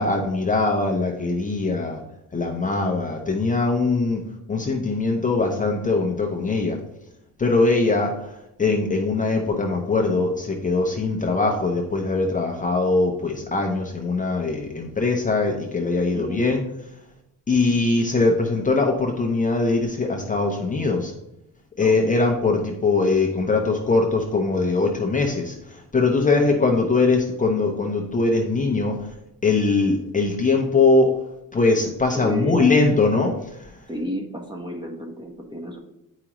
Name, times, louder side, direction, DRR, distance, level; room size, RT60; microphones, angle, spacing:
voice 1, 0.0-2.0 2.3-4.2 4.5-6.8 7.4-16.6 17.5-21.1 21.8-29.1 29.4-31.1 31.5-33.7, left 3 dB, 20° left, 1 dB, 0.7 m, -21 dB
voice 2, 16.1-16.5 21.7-22.2 26.3-26.7 32.1-32.7 33.9-35.8, equal, 10° right, 3 dB, 1.0 m, -32 dB
8.5 x 4.8 x 3.0 m, 0.83 s
cardioid pair, 130°, 36 cm